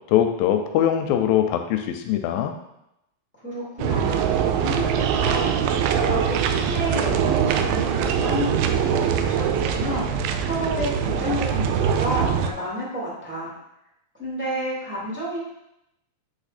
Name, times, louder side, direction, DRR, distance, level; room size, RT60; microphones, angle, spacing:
voice 1, 0.1-2.5, left 10 dB, 80° left, 6 dB, 2.3 m, -22 dB
voice 2, 3.4-5.5 6.0-13.5 14.2-15.4, equal, 5° right, -8 dB, 1.5 m, -30 dB
sound 1, 3.8-12.5, right 8 dB, 85° right, 2.4 m, -23 dB
8.5 x 3.6 x 4.1 m, 0.83 s
omnidirectional pair, 4.3 m